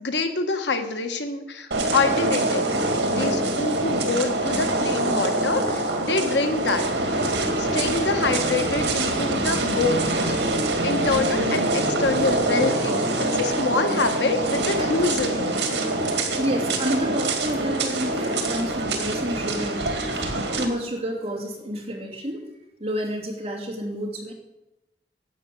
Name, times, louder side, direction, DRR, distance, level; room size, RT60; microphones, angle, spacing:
voice 1, 0.0-2.7 3.1-10.4 10.8-15.6, left 3 dB, 85° left, 6 dB, 1.4 m, -26 dB
sound 1, 1.7-20.6, right 2 dB, 80° right, 2.2 m, -24 dB
voice 2, 14.8-15.1 16.4-22.4 22.8-24.3, equal, 35° right, 0 dB, 3.0 m, -30 dB
11.5 x 8.0 x 7.9 m, 0.93 s
head